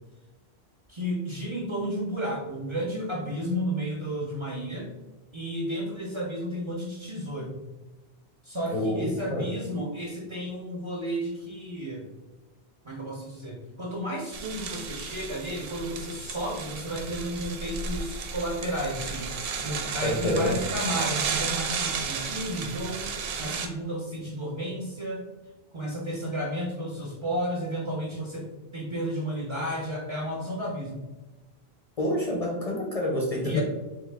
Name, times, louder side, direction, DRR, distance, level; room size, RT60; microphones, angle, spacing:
voice 1, 0.9-4.9 5.3-7.6 8.4-12.0 12.8-23.1 23.4-25.2 25.7-28.5 28.7-31.0 33.4-33.6, equal, 35° right, -2 dB, 0.5 m, -32 dB
voice 2, 8.7-9.5 20.0-20.6 32.0-33.6, left 1 dB, 45° left, -1 dB, 0.5 m, -27 dB
sound 1, 14.3-23.7, right 5 dB, 70° right, 0.7 m, -33 dB
3.5 x 2.7 x 3.3 m, 1.1 s
omnidirectional pair, 1.1 m